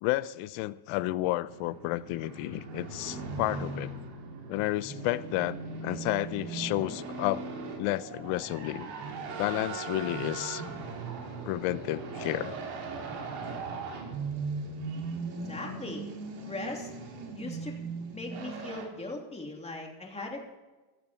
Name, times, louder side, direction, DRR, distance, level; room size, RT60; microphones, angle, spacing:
voice 1, 0.0-3.9 4.5-7.4 7.8-8.9 9.4-10.6 11.5-12.5, left 17 dB, 85° left, 16 dB, 0.9 m, -31 dB
sound 1, 1.5-18.8, right 4 dB, 90° right, 5.0 m, -38 dB
voice 2, 15.3-16.0 16.4-16.9 17.3-17.8 18.1-20.6, left 2 dB, 15° left, 0 dB, 3.1 m, -39 dB
16.0 x 14.5 x 4.5 m, 1.2 s
cardioid pair, 140°, 49 cm